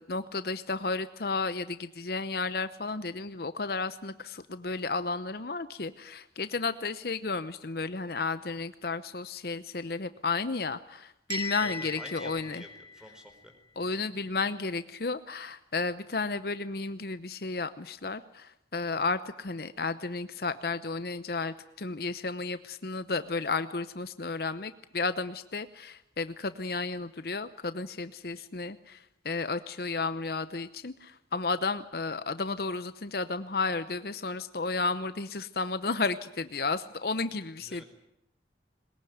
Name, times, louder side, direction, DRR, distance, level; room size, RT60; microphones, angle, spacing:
voice 1, 0.0-12.6 13.8-37.8, left 3 dB, 60° left, 12 dB, 0.8 m, -33 dB
Bell, 11.3-13.3, left 2 dB, 25° right, 3.1 m, -38 dB
voice 2, 11.6-13.5 13.8-13.9 37.6-37.8, equal, 5° right, 5 dB, 4.3 m, -48 dB
21.5 x 21.0 x 9.4 m, 0.79 s
head